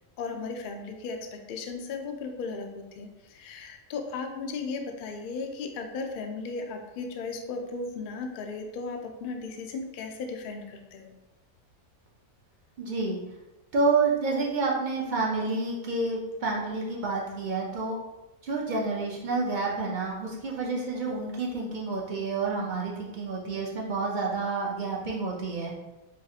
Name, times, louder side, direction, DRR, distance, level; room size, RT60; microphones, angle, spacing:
voice 1, 0.2-11.1, left 4 dB, 80° left, 4 dB, 0.4 m, -36 dB
voice 2, 12.8-13.2 13.7-18.0 18.4-25.7, right 3 dB, 60° right, -2 dB, 0.5 m, -29 dB
5.4 x 2.4 x 2.7 m, 1.0 s
omnidirectional pair, 1.5 m